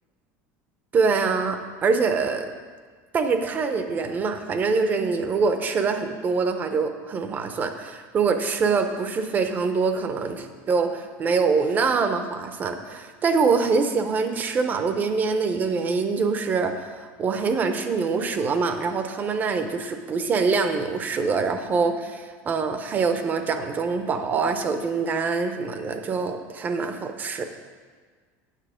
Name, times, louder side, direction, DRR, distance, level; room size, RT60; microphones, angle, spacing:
voice 1, 0.9-2.5 3.1-27.4, right 4 dB, 25° right, 8 dB, 0.6 m, -24 dB
9.1 x 6.3 x 5.0 m, 1.5 s
cardioid pair, 155°, 7 cm